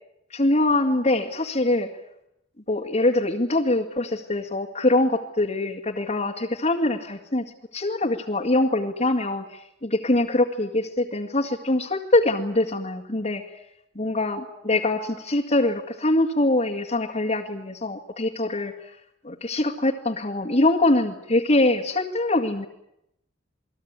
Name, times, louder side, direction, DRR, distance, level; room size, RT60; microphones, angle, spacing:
voice 1, 0.3-1.9 2.7-13.6 14.0-19.0 19.2-22.7, left 2 dB, 35° left, -2 dB, 2.2 m, -23 dB
29.0 x 20.5 x 9.8 m, 0.82 s
head